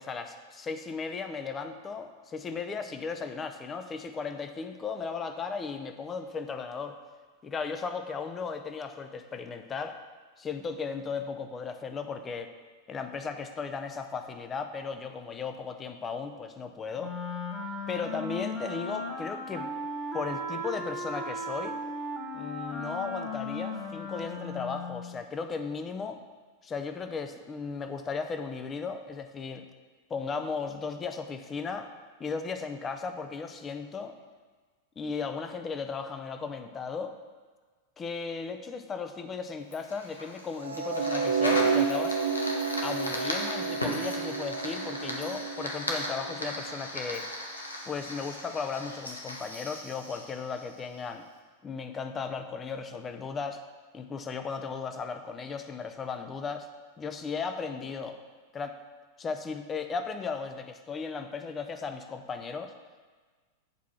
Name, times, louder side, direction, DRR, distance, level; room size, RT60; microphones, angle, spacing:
voice 1, 0.0-7.0 7.4-10.0 10.4-12.5 12.9-17.2 17.9-19.7 20.1-21.8 22.3-26.2 26.6-29.6 30.1-31.9 32.2-34.2 35.0-37.1 38.0-42.2 42.8-47.3 47.9-51.2 51.6-53.6 53.9-56.7 57.0-58.2 58.5-58.8 59.2-62.7, left 5 dB, 20° left, 8 dB, 0.6 m, -36 dB
Wind instrument woodwind instrument, 17.0-25.2, left 1 dB, ahead, 1.4 m, -36 dB
Fire, 39.7-51.1, left 1 dB, 80° left, 1.2 m, -37 dB
sound 1, 40.6-46.9, right 5 dB, 75° right, 0.5 m, -30 dB
8.3 x 4.7 x 5.8 m, 1.4 s
figure-of-eight pair, 90°, 0 cm